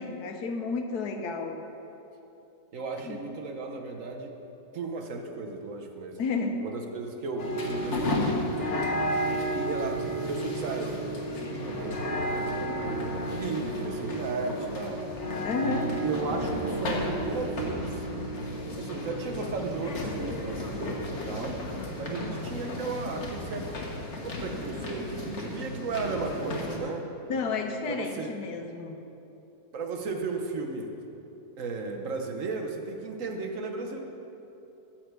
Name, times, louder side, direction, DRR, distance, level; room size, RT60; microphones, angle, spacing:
voice 1, 0.0-1.7 3.0-3.2 6.2-6.6 15.4-15.9 27.3-28.9, left 4 dB, 85° left, 5 dB, 1.4 m, -31 dB
voice 2, 2.7-4.3 4.7-6.2 6.6-8.9 9.5-12.3 12.8-15.0 15.6-18.1 18.8-21.6 22.0-23.7 24.1-27.1 27.8-28.3 29.7-30.9 31.6-34.0, right 3 dB, 60° right, 3 dB, 1.3 m, -35 dB
sound 1, 7.4-26.8, equal, 50° left, 1.5 m, -32 dB
13.5 x 4.5 x 8.1 m, 3.0 s
omnidirectional pair, 1.6 m